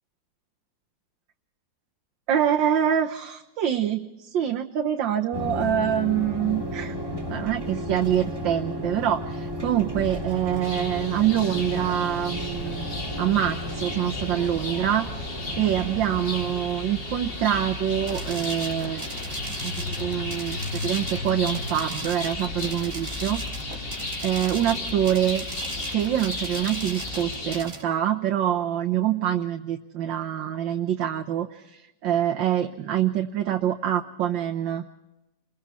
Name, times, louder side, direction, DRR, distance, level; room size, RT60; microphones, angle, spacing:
voice 1, 2.3-6.9 7.3-12.8 13.2-19.0 19.6-23.4 24.2-25.4 25.9-34.9, right 10 dB, 80° right, 3 dB, 1.7 m, -25 dB
sound 1, 5.3-16.5, equal, 10° right, 2.5 m, -33 dB
sound 2, 10.6-27.6, left 2 dB, 70° left, 4.0 m, -34 dB
sound 3, 18.1-27.8, right 2 dB, 30° right, 4.0 m, -38 dB
29.0 x 22.0 x 4.2 m, 0.97 s
omnidirectional pair, 2.0 m